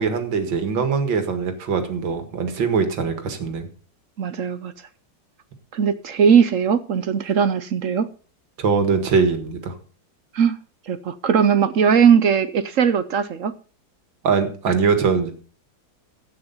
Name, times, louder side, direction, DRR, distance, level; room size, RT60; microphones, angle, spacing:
voice 1, 0.0-3.7 8.6-9.8 14.2-15.3, right 5 dB, 85° right, 8 dB, 2.5 m, -22 dB
voice 2, 4.2-4.7 5.7-8.1 10.3-10.6 10.9-13.5, right 7 dB, 60° right, 14 dB, 0.9 m, -19 dB
12.5 x 8.8 x 5.5 m, 0.39 s
omnidirectional pair, 2.0 m